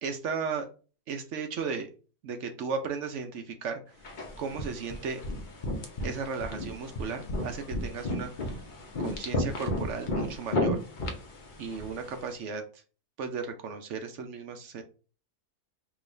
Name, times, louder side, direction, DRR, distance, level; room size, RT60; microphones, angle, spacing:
voice 1, 0.0-0.7 1.1-1.9 2.2-3.8 4.4-5.2 6.0-8.3 9.0-10.8 11.6-12.6 13.2-14.8, right 5 dB, 65° right, 6 dB, 0.8 m, -35 dB
sound 1, 4.0-12.2, left 1 dB, 50° left, 0.6 m, -34 dB
4.9 x 2.9 x 2.6 m, 0.36 s
omnidirectional pair, 1.7 m